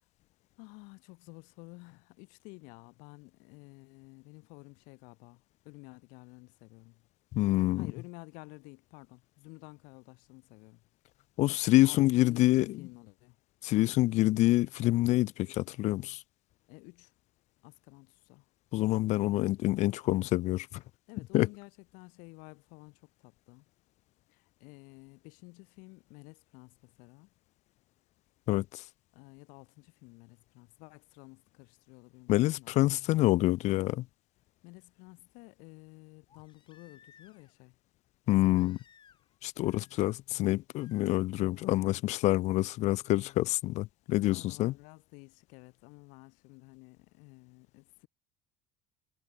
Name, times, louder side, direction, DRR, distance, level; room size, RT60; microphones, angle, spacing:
voice 1, 0.6-7.0 7.8-10.8 11.8-13.4 16.7-17.1 17.6-18.5 21.1-23.7 24.3-27.3 29.1-32.7 34.6-37.7 38.4-38.6 39.6-39.9 44.3-48.1, left 28 dB, 80° left, 4.3 m, -52 dB
voice 2, 7.3-7.9 11.4-12.8 13.6-16.2 18.7-20.8 21.3-21.5 28.5-28.8 32.3-34.0 38.3-38.8 39.4-44.7, left 17 dB, 60° left, 0.5 m, -27 dB
Crying sobbing, 36.3-37.6 38.5-39.4 39.6-40.2 40.8-41.1 42.7-42.8, left 8 dB, 35° left, 3.6 m, -62 dB
supercardioid pair, 105°, 13 cm